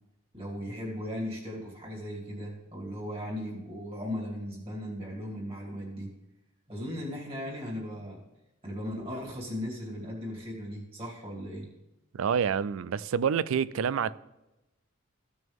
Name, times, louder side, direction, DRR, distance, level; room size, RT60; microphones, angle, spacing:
voice 1, 0.3-6.1 6.7-8.2 8.6-11.7, equal, 25° right, 2.8 m, -37 dB
voice 2, 12.1-14.2, right 7 dB, 80° right, 0.4 m, -27 dB
15.0 x 6.2 x 3.6 m
head